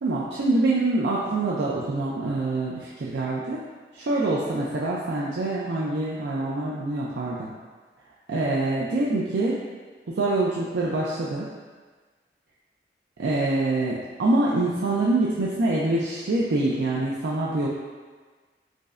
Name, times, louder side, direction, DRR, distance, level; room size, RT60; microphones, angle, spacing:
voice 1, 0.0-3.6 3.9-7.5 8.3-9.6 10.1-11.5 13.2-17.7, right 2 dB, 80° right, -5 dB, 0.4 m, -25 dB
5.0 x 2.1 x 2.4 m, 1.4 s
head